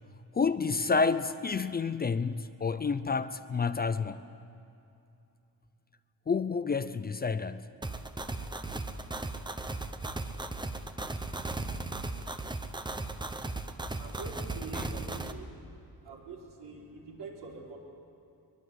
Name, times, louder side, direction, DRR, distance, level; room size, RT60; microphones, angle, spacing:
voice 1, 0.3-4.2 6.3-7.7 14.7-14.9, left 5 dB, 25° left, 0.5 m, -29 dB
sound 1, 7.8-15.3, right 2 dB, 10° right, 0.8 m, -37 dB
voice 2, 13.8-15.5 16.0-17.8, right 3 dB, 85° right, 4.9 m, -44 dB
23.5 x 22.0 x 8.0 m
wide cardioid pair, 175°, 39 cm